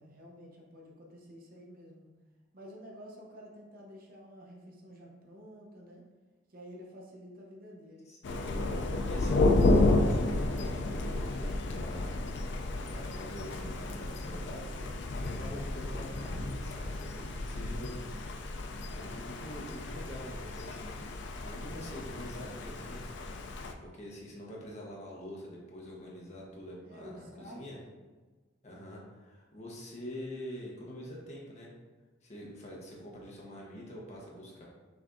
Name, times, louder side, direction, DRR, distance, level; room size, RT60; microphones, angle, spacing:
voice 1, 0.0-2.1 2.5-6.0 6.5-8.1 26.8-27.9, equal, 50° right, -2 dB, 0.8 m, -50 dB
voice 2, 8.1-8.7 9.0-12.1 12.8-14.7 15.2-18.2 18.7-21.0 21.4-23.0 23.8-27.8 28.6-31.7 32.2-34.6, left 1 dB, 35° left, -3 dB, 1.0 m, -45 dB
Thunder, 8.2-23.7, left 2 dB, 60° left, 0.4 m, -31 dB
5.9 x 3.4 x 2.6 m, 1.3 s
head